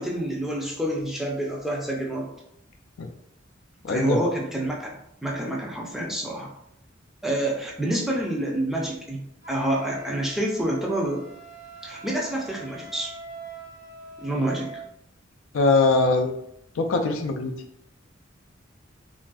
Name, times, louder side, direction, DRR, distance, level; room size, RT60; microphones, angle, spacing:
voice 1, 0.0-2.3 3.9-6.5 7.2-11.2 11.8-13.1 14.2-14.7, right 1 dB, ahead, -3 dB, 0.5 m, -28 dB
voice 2, 3.8-4.2 15.5-16.3 16.8-17.5, left 3 dB, 85° left, 5 dB, 0.4 m, -21 dB
Wind instrument woodwind instrument, 9.4-14.9, right 3 dB, 55° right, 0.8 m, -43 dB
3.2 x 2.5 x 2.3 m, 0.76 s
head